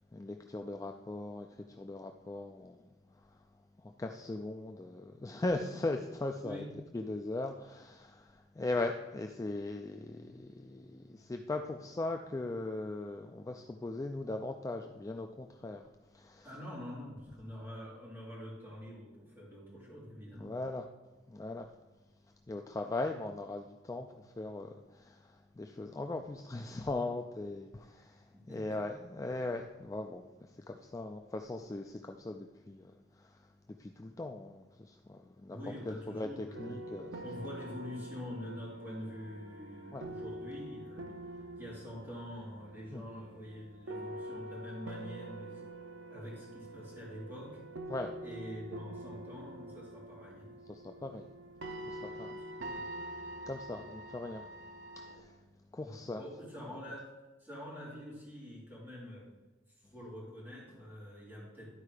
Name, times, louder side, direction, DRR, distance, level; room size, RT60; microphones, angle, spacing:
voice 1, 0.1-2.8 3.2-3.4 3.8-6.6 6.9-15.9 16.1-16.5 20.4-20.8 21.3-21.7 22.5-33.5 33.8-35.6 35.8-37.1 39.9-40.1 42.9-43.0 47.9-48.1 50.7-51.3 51.8-52.4 53.4-54.4 54.9-55.4 55.7-56.2 56.7-56.8, left 2 dB, 15° left, 4 dB, 0.3 m, -39 dB
voice 2, 16.4-20.6 28.3-28.8 35.5-36.8 37.2-41.1 41.5-45.6 46.1-47.6 48.2-50.5 52.6-52.8 55.8-57.1 57.4-59.3 59.9-61.7, equal, 10° right, -7 dB, 3.2 m, -45 dB
sound 1, 36.5-55.2, right 1 dB, 75° right, 0.8 m, -46 dB
11.5 x 4.5 x 4.9 m, 1.1 s
head